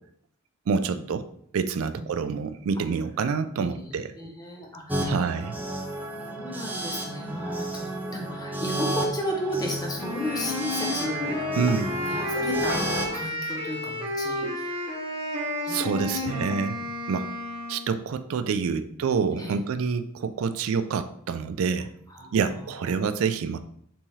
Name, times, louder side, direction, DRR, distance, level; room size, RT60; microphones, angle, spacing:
voice 1, 0.7-1.3 1.5-4.1 5.0-5.6 11.6-11.9 15.7-16.8 17.1-17.3 17.7-21.9 22.3-23.6, right 5 dB, 70° right, 10 dB, 0.3 m, -27 dB
voice 2, 3.6-5.2 6.1-11.4 12.0-15.1 15.6-16.6 18.7-18.9 19.3-19.6 22.1-23.0, equal, 15° left, 0 dB, 0.8 m, -34 dB
sound 1, 4.9-13.2, right 1 dB, 10° right, 0.5 m, -32 dB
Wind instrument woodwind instrument, 10.0-17.9, left 1 dB, 25° right, 0.9 m, -31 dB
4.1 x 3.5 x 3.1 m, 0.67 s
head